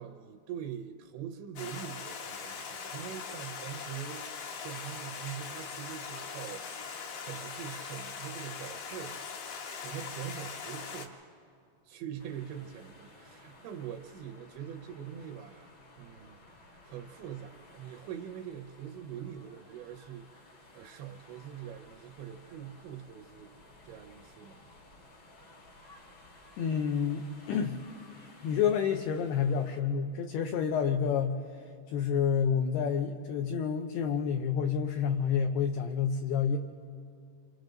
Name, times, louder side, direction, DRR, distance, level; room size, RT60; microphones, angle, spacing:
voice 1, 0.0-9.2 9.8-11.2 11.8-20.3 20.7-23.5 23.8-24.6, right 9 dB, 80° right, 5 dB, 2.8 m, -43 dB
Stream, 1.6-11.1, left 6 dB, 60° left, 2.4 m, -41 dB
sound 1, 12.2-29.8, left 2 dB, 45° left, 1.4 m, -56 dB
voice 2, 26.6-27.8 28.4-31.4 31.9-36.6, left 7 dB, 80° left, 5 dB, 2.4 m, -29 dB
28.5 x 26.0 x 3.9 m, 2.4 s
omnidirectional pair, 5.3 m